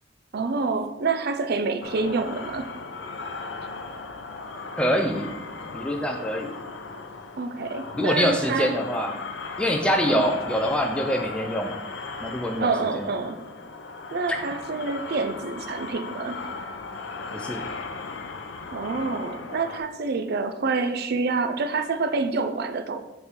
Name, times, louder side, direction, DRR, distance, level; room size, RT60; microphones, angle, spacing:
voice 1, 0.3-2.7 7.4-8.7 10.0-10.2 12.6-13.4 14.1-16.4 18.7-23.0, right 4 dB, 55° right, 9 dB, 0.5 m, -27 dB
sound 1, 1.8-19.8, left 4 dB, 70° left, 0.6 m, -37 dB
voice 2, 4.8-5.3 5.7-6.5 8.0-9.1 9.6-11.8 12.2-12.7 13.0-13.1 17.3-17.7, equal, 5° left, 3 dB, 0.4 m, -25 dB
6.6 x 3.4 x 4.4 m, 0.97 s
head